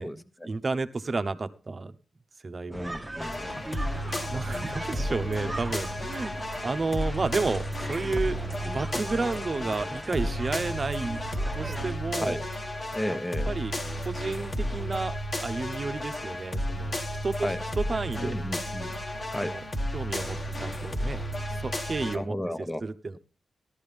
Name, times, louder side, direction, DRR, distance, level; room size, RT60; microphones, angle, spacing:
voice 1, 0.0-1.9 2.4-2.9 4.3-6.3 6.6-8.4 8.7-11.2 11.5-12.4 13.1-13.2 13.5-13.8 14.0-15.1 15.4-16.9 17.2-17.5 17.8-18.3 19.4-19.6 19.9-22.4 22.8-23.2, right 3 dB, 45° right, 11 dB, 1.0 m, -31 dB
sound 1, 2.7-22.0, right 1 dB, 80° left, 1.7 m, -49 dB
voice 2, 2.7-3.5 5.1-5.3 12.2-12.4 12.9-13.5 17.4-17.6 18.2-18.9 19.3-19.5 22.1-22.8, left 1 dB, 15° left, 9 dB, 1.3 m, -33 dB
sound 2, 2.7-12.0, right 1 dB, 20° right, 1.2 m, -40 dB
sound 3, 3.2-22.2, equal, 40° left, 1.7 m, -33 dB
13.5 x 12.0 x 3.5 m, 0.35 s
cardioid pair, 55°, 0 cm